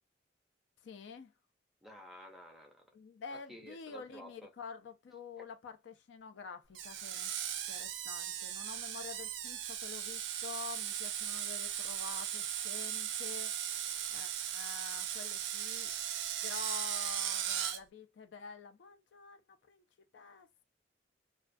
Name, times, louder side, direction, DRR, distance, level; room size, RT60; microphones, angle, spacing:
voice 1, 0.8-1.3 2.9-7.3 7.7-13.6 14.1-15.9 16.4-19.4 19.7-19.8 20.1-20.6, left 5 dB, 75° left, 0.4 m, -48 dB
voice 2, 1.8-2.9 3.3-4.5, equal, ahead, 0.5 m, -52 dB
Screech, 6.7-17.8, right 10 dB, 75° right, 0.4 m, -37 dB
2.3 x 2.3 x 2.4 m
head